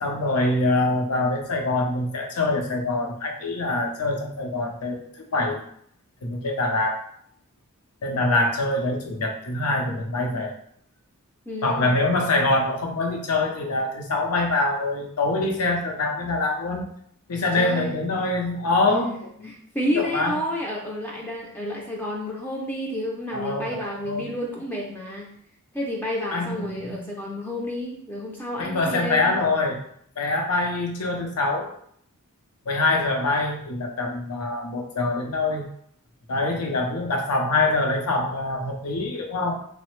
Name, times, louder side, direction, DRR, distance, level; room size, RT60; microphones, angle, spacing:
voice 1, 0.0-5.6 6.2-7.0 8.0-10.5 11.6-16.9 17.3-19.5 19.9-20.4 23.3-24.3 26.3-27.0 28.6-29.8 30.2-31.7 32.7-35.7 36.3-39.5, left 2 dB, 85° left, 2 dB, 0.6 m, -24 dB
voice 2, 11.5-12.0 17.6-18.0 19.0-19.2 19.4-25.3 25.7-29.4, left 1 dB, 10° left, -3 dB, 0.3 m, -30 dB
3.1 x 2.0 x 3.0 m, 0.65 s
head